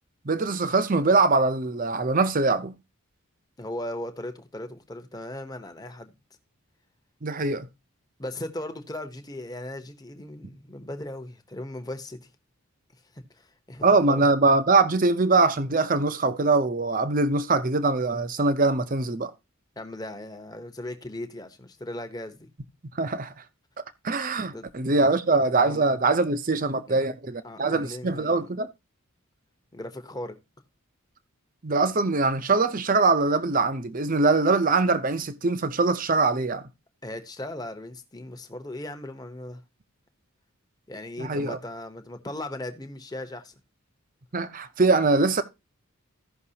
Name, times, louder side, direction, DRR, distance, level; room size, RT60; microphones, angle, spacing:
voice 1, 0.2-2.8 7.2-7.7 13.8-19.3 23.0-23.3 24.0-28.7 31.6-36.6 41.2-41.6 44.3-45.4, right 3 dB, 35° right, 0.7 m, -23 dB
voice 2, 3.6-6.1 8.2-12.3 13.1-14.3 19.8-22.5 24.5-24.7 25.6-25.8 26.9-27.0 27.4-28.5 29.7-30.3 37.0-39.6 40.9-43.5, left 1 dB, 15° left, 0.9 m, -37 dB
15.5 x 5.9 x 2.8 m
head